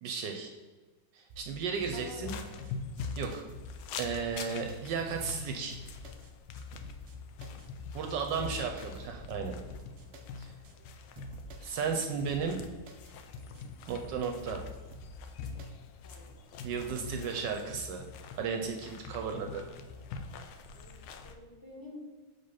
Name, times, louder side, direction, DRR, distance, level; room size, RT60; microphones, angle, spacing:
voice 1, 0.0-0.5 1.1-2.3 3.2-3.4 3.9-5.8 7.9-9.5 10.4-10.5 11.6-12.6 13.9-14.6 16.6-18.0 18.4-19.6, right 6 dB, 75° right, 4 dB, 1.1 m, -34 dB
sound 1, 1.3-1.7 1.9-2.2 2.5-2.7 3.0-4.8 5.2-5.3 5.7-6.3 6.6-7.1 7.4-7.7 7.9-8.2 8.4-10.2 10.6-10.7 11.2-11.7 12.0-12.6 12.9-13.1 13.4-13.6 13.9-15.7 16.1-16.2 16.6-17.2, right 1 dB, 90° right, 0.6 m, -50 dB
sound 2, 1.7-21.4, left 5 dB, 90° left, 1.4 m, -44 dB
voice 2, 1.9-2.6 8.0-8.3 10.7-10.9 16.0-16.6 16.8-17.8 19.2-19.7 20.7-22.0, left 1 dB, 15° left, -3 dB, 0.9 m, -51 dB
5.2 x 3.6 x 5.6 m, 1.3 s
omnidirectional pair, 2.2 m